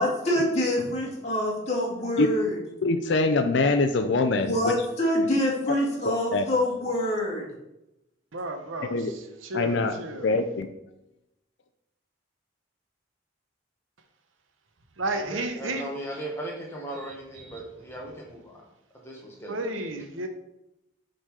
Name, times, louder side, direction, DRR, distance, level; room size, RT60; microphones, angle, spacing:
voice 1, 0.0-2.6 4.3-7.5, left 1 dB, 35° left, -5 dB, 2.3 m, -26 dB
voice 2, 2.8-4.7 6.3-6.4 8.8-9.1 9.5-9.9 10.2-10.7, left 3 dB, 65° left, 7 dB, 0.5 m, -23 dB
voice 3, 8.3-8.9 9.4-10.3 15.0-15.9 17.4-17.6 19.5-20.3, right 2 dB, 90° right, 6 dB, 1.0 m, -32 dB
voice 4, 15.1-18.7 18.9-19.8, right 1 dB, 10° left, -2 dB, 1.4 m, -38 dB
7.7 x 4.0 x 4.7 m, 0.88 s
head